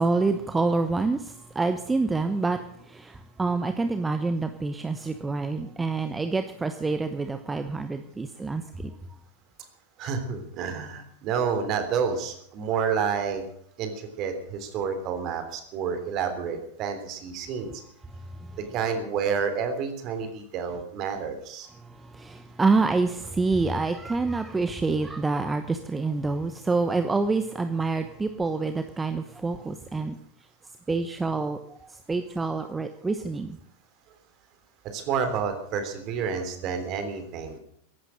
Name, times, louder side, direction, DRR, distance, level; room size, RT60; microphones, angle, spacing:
voice 1, 0.0-2.6 2.9-8.9 18.4-18.5 21.9-30.1 30.9-31.6 32.1-33.6, right 3 dB, 10° right, 8 dB, 1.1 m, -27 dB
voice 2, 10.0-13.4 13.8-17.7 18.7-21.7 34.8-37.6, right 6 dB, 35° right, 7 dB, 3.4 m, -29 dB
15.5 x 11.5 x 6.5 m, 0.69 s
figure-of-eight pair, 90°, 0 cm